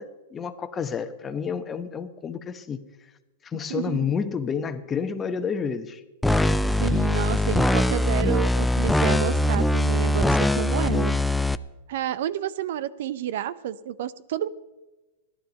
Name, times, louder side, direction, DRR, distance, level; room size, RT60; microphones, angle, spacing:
voice 1, 0.0-2.8 3.4-6.0, left 6 dB, 20° left, 1.0 m, -30 dB
voice 2, 3.7-4.1 6.8-11.2 11.9-14.5, right 11 dB, 65° right, 0.6 m, -30 dB
sound 1, 6.2-11.6, left 1 dB, 5° left, 0.4 m, -22 dB
15.5 x 11.5 x 5.2 m
hypercardioid pair, 115°, 0 cm